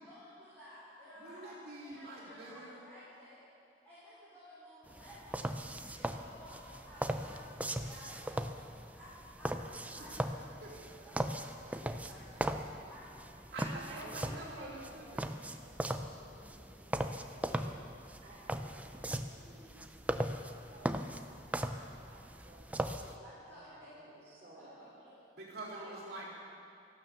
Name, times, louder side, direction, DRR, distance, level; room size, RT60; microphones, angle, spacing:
voice 1, 0.0-3.4 3.8-8.6 8.9-12.4 12.9-13.3 23.2-24.1 24.5-25.1, equal, 10° left, -12 dB, 4.1 m, -54 dB
voice 2, 1.2-2.8 9.9-10.3 10.6-10.7 13.5-15.2 25.4-26.3, right 1 dB, 55° right, -7 dB, 3.9 m, -46 dB
sound 1, 4.9-23.2, right 1 dB, 10° right, 0.4 m, -39 dB
voice 3, 13.7-15.2 15.6-17.8 18.2-19.8 20.6-24.9 25.6-25.9, right 2 dB, 35° right, -6 dB, 4.6 m, -54 dB
13.5 x 12.0 x 6.8 m, 2.6 s
head